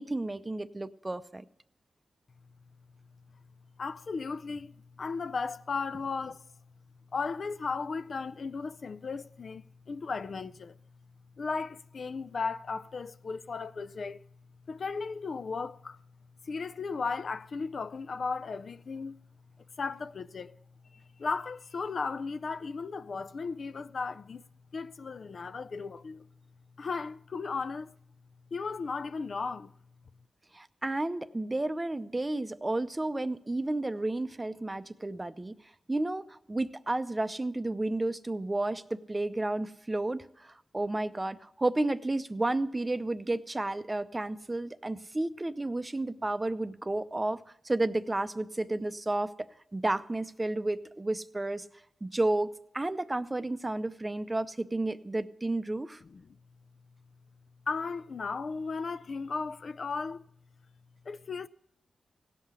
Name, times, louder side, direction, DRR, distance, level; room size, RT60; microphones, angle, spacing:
voice 1, 0.0-1.4 30.5-35.6 35.9-47.4 47.6-51.7 52.0-56.0, right 2 dB, 20° right, 0.6 m, -32 dB
voice 2, 3.8-6.5 7.1-10.8 11.4-14.2 14.7-16.0 16.4-19.2 19.8-20.6 20.9-24.4 24.7-26.3 26.8-27.9 28.5-29.7 56.1-56.4 57.7-60.3 61.1-61.5, left 4 dB, 60° left, 0.4 m, -35 dB
17.0 x 5.7 x 8.1 m
cardioid pair, 70°, 0 cm